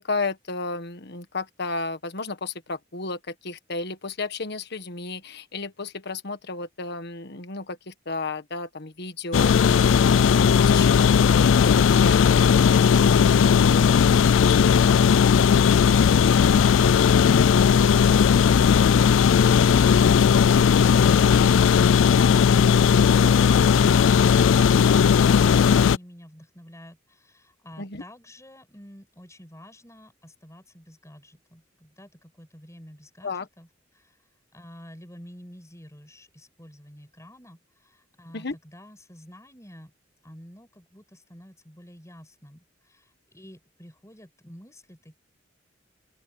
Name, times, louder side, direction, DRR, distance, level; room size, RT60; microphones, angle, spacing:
voice 1, 0.0-11.1 11.3-14.0 14.6-14.7 16.8-16.9 27.8-28.0 33.2-33.5 38.3-38.6, left 3 dB, 60° left, 1.6 m, -33 dB
sound 1, 9.3-26.0, left 7 dB, 80° left, 0.4 m, -17 dB
voice 2, 24.3-33.7 33.9-34.2 34.5-39.9 40.2-45.2, equal, 15° left, 7.1 m, -48 dB
open air
head